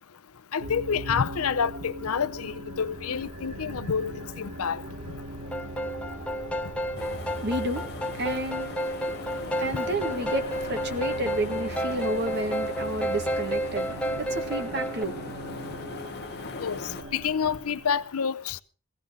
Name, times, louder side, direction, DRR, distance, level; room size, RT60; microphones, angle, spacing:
voice 1, 0.5-4.8 16.6-16.8 17.1-18.6, left 6 dB, 80° left, 0.6 m, -28 dB
sound 1, 0.6-18.1, right 1 dB, 90° right, 3.5 m, -40 dB
sound 2, 5.5-15.0, equal, 5° left, 0.9 m, -31 dB
sound 3, 7.0-17.0, left 4 dB, 45° left, 0.9 m, -41 dB
voice 2, 7.3-16.0, right 1 dB, 50° right, 1.6 m, -32 dB
16.5 x 16.0 x 3.7 m
head